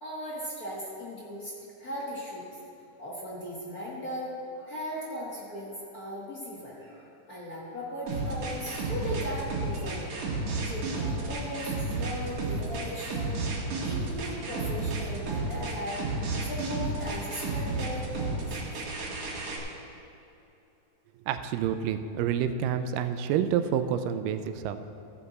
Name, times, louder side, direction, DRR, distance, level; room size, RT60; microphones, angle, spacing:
voice 1, 0.0-2.6 3.0-10.1 10.6-16.0 16.4-18.7, left 1 dB, 45° left, -5 dB, 1.2 m, -38 dB
sound 1, 8.1-19.6, right 3 dB, 65° right, 3.1 m, -32 dB
voice 2, 21.3-24.8, right 9 dB, 85° right, 9 dB, 2.2 m, -28 dB
14.5 x 8.0 x 4.1 m, 2.8 s
omnidirectional pair, 3.8 m